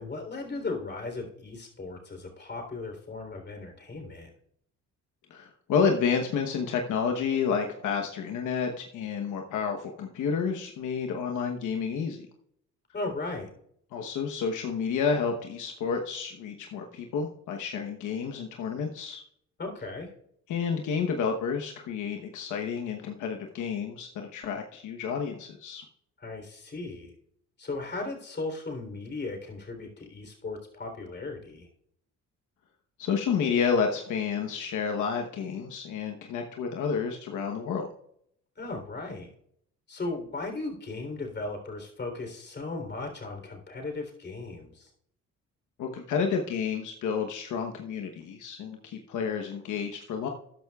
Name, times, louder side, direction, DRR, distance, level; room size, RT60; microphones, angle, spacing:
voice 1, 0.0-4.3 12.9-13.5 19.6-20.1 26.2-27.1 27.6-31.7 38.6-39.3 39.9-44.9, left 3 dB, 35° left, 3 dB, 3.6 m, -36 dB
voice 2, 5.3-12.3 13.9-19.2 20.5-25.8 33.0-37.9 45.8-50.3, left 6 dB, 80° left, 3 dB, 1.1 m, -30 dB
13.5 x 10.5 x 2.4 m, 0.70 s
cardioid pair, 90°, 30 cm